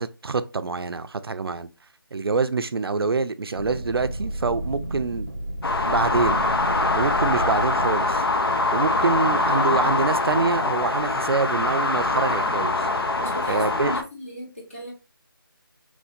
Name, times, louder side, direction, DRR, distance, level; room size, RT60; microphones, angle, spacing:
voice 1, 0.0-1.7 2.1-5.3 5.8-6.5 6.9-8.2 8.7-12.9 13.5-13.9, right 4 dB, 90° right, 0.4 m, -25 dB
sound 1, 3.5-8.9, right 1 dB, 45° right, 0.6 m, -32 dB
sound 2, 5.6-14.0, left 2 dB, 90° left, 0.5 m, -23 dB
voice 2, 13.2-14.9, equal, 35° left, 1.2 m, -37 dB
3.2 x 2.6 x 2.4 m
figure-of-eight pair, 175°, 12 cm